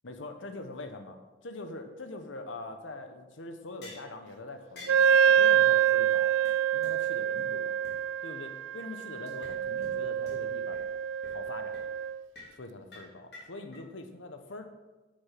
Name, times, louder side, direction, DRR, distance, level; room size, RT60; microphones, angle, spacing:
voice 1, 0.0-1.1 1.4-6.3 6.7-7.7 8.2-10.8 11.3-11.8 12.6-14.7, left 2 dB, 90° left, 7 dB, 1.1 m, -43 dB
sound 1, 3.8-4.1 4.8-5.1 5.8-5.9 6.1-6.2 6.5-6.6 6.8-6.9 7.4-7.5 7.8-7.9 9.3-9.5 9.8-9.9 10.3-10.4 10.7-10.8 11.2-11.4 11.7-11.9 12.3-12.5 12.9-13.8, left 2 dB, 60° left, 3.4 m, -48 dB
Wind instrument woodwind instrument, 4.9-12.2, right 9 dB, 90° right, 0.3 m, -26 dB
9.6 x 6.6 x 5.9 m, 1.2 s
head